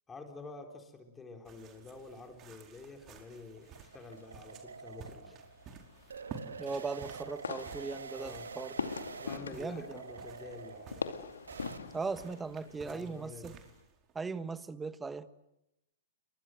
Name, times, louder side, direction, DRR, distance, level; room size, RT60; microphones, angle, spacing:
voice 1, 0.1-5.4 8.2-8.5 9.2-11.0 12.7-13.6, left 3 dB, 15° left, 4 dB, 4.1 m, -49 dB
sound 1, 1.4-14.2, right 6 dB, 30° right, 4.6 m, -53 dB
sound 2, 2.8-11.8, right 5 dB, 80° right, 1.8 m, -47 dB
sound 3, 3.7-13.8, left 5 dB, 80° left, 2.4 m, -44 dB
voice 2, 6.6-8.7 9.5-10.0 11.9-13.6 14.1-15.3, right 4 dB, 10° right, 14 dB, 1.3 m, -38 dB
29.5 x 24.5 x 8.0 m, 0.90 s
figure-of-eight pair, 110°, 0 cm